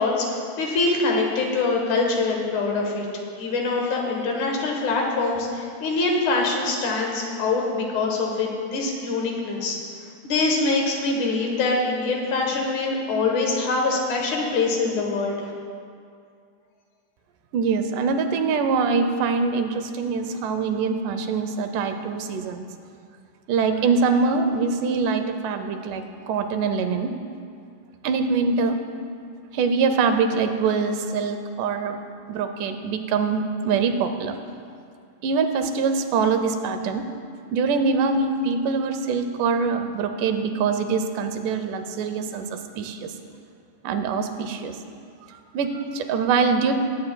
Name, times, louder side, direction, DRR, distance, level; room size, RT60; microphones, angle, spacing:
voice 1, 0.0-3.1 3.4-9.8 10.2-15.4, left 3 dB, 75° left, 0 dB, 2.6 m, -24 dB
voice 2, 17.5-22.7 23.5-27.1 28.0-28.8 29.5-32.0 32.3-34.3 35.2-37.1 37.5-43.1 43.8-44.8 45.3-46.7, right 5 dB, 85° right, 7 dB, 2.2 m, -24 dB
19.5 x 8.7 x 2.2 m, 2.3 s
omnidirectional pair, 3.6 m